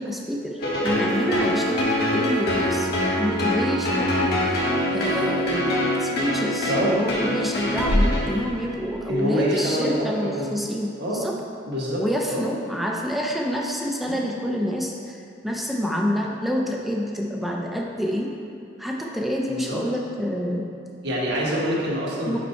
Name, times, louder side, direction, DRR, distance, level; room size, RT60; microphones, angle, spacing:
voice 1, 0.0-2.9 3.2-4.7 4.9-11.4 12.0-15.2 15.4-18.3 18.8-20.6 22.3-22.4, equal, ahead, -1 dB, 0.4 m, -27 dB
sound 1, 0.6-8.7, equal, 55° left, 1.2 m, -24 dB
voice 2, 9.1-10.5 11.0-11.2 11.7-12.4 14.0-14.2 19.5-19.8 21.0-22.4, equal, 60° right, -5 dB, 1.2 m, -26 dB
5.1 x 4.6 x 4.3 m, 2.5 s
head